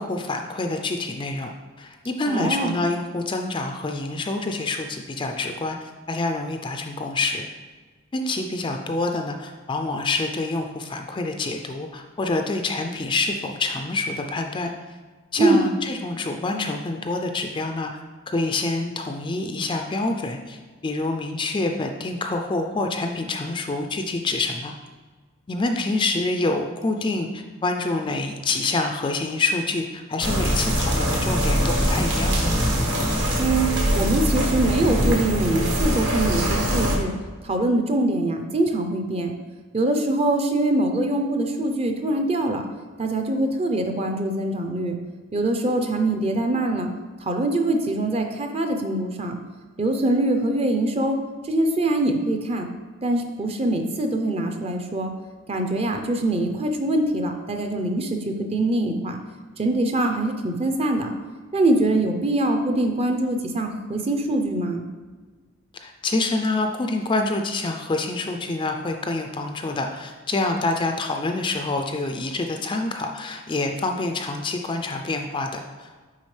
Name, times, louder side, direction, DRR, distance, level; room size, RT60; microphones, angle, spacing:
voice 1, 0.0-1.5 1.8-7.5 8.1-14.7 15.3-17.9 18.3-24.7 25.5-32.6 65.8-75.9, left 2 dB, 25° left, 4 dB, 0.4 m, -27 dB
voice 2, 2.3-2.7 15.4-15.6 33.4-33.7 33.9-37.2 37.4-39.3 39.7-42.6 43.0-45.0 45.3-46.9 47.2-49.4 49.8-51.2 51.4-52.7 53.0-55.1 55.5-59.2 59.6-61.1 61.5-64.9, right 1 dB, 30° right, 4 dB, 0.6 m, -23 dB
sound 1, 30.2-37.0, equal, 55° right, 1.3 m, -22 dB
9.5 x 3.7 x 3.2 m, 1.4 s
head